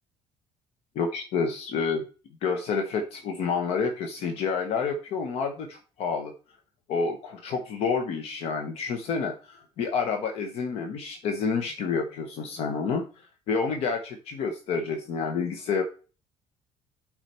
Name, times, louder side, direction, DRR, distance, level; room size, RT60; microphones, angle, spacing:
voice 1, 0.9-2.1 2.4-6.3 6.9-13.1 13.5-15.8, left 5 dB, 65° left, 5 dB, 1.0 m, -29 dB
8.6 x 4.9 x 4.4 m, 0.36 s
cardioid pair, 140°, 11 cm